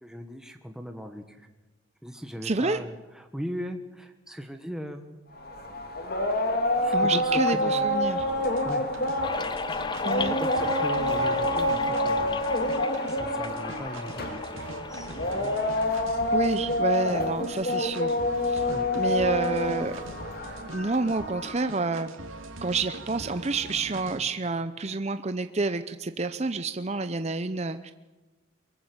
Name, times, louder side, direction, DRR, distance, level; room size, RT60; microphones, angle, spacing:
voice 1, 0.0-1.5 2.0-5.2 6.3-8.0 8.6-8.9 10.3-12.4 13.1-15.6 18.7-18.9, equal, 5° right, 5 dB, 1.4 m, -39 dB
voice 2, 2.4-2.8 6.9-8.2 10.0-10.4 16.3-18.2 18.4-18.7 18.9-19.9 20.7-22.1 22.6-27.9, right 3 dB, 30° right, 10 dB, 0.7 m, -29 dB
sound 1, 5.4-21.7, left 1 dB, 45° left, 2.6 m, -27 dB
sound 2, 8.2-24.2, right 2 dB, 80° right, 2.9 m, -42 dB
sound 3, 9.2-15.9, left 3 dB, 20° left, 0.7 m, -36 dB
23.0 x 22.5 x 8.0 m, 1.2 s
head